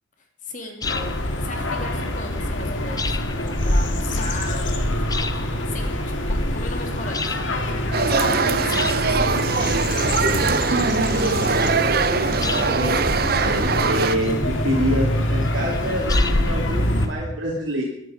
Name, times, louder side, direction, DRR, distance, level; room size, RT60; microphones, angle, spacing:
voice 1, 0.4-0.8 1.4-4.8 5.1-5.9 6.3-7.4 7.8-9.3 12.2-12.7, left 2 dB, 40° left, 3 dB, 3.0 m, -36 dB
sound 1, 0.8-17.1, left 1 dB, 80° left, 2.2 m, -25 dB
sound 2, 0.8-17.1, left 3 dB, 20° left, 0.7 m, -34 dB
sound 3, 7.9-14.2, right 5 dB, 50° right, 0.7 m, -22 dB
voice 2, 10.0-12.0 12.3-17.8, equal, 70° right, -4 dB, 3.0 m, -27 dB
22.0 x 12.0 x 5.2 m, 0.73 s
head